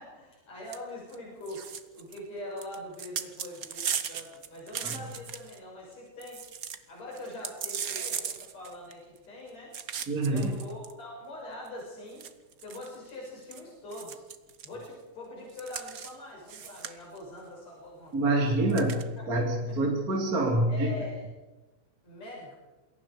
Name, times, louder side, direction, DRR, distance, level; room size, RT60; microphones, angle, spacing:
voice 1, 0.0-1.6 1.9-6.4 6.9-9.7 10.3-12.3 12.6-14.2 14.6-18.8 19.2-19.3 19.7-19.8 20.7-21.3 22.0-22.5, left 1 dB, 65° left, -3 dB, 8.1 m, -43 dB
sound 1, 0.7-0.8 1.1-1.2 1.4-2.2 2.6-5.6 5.9-6.0 6.2-6.8 7.1-9.2 9.7-10.9 11.7-11.8 12.2-13.6 13.9-14.7 15.5-16.1 16.5-17.2 18.7-19.0, right 8 dB, 90° right, 0.7 m, -37 dB
voice 2, 10.1-10.5 18.1-19.0 19.3-20.9, right 2 dB, 30° right, 0 dB, 3.0 m, -26 dB
28.0 x 22.0 x 5.0 m, 1.1 s
omnidirectional pair, 3.3 m